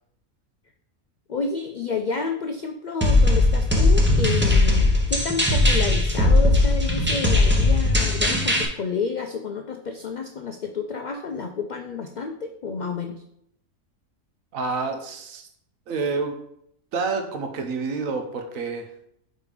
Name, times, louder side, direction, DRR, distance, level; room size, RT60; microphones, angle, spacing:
voice 1, 1.3-13.2, left 5 dB, 90° left, 5 dB, 0.4 m, -30 dB
sound 1, 3.0-8.6, left 2 dB, 10° right, 0.7 m, -19 dB
voice 2, 14.5-15.5 15.9-16.4 16.9-18.9, right 4 dB, 80° right, 5 dB, 1.2 m, -28 dB
4.8 x 4.3 x 5.0 m, 0.73 s
omnidirectional pair, 1.4 m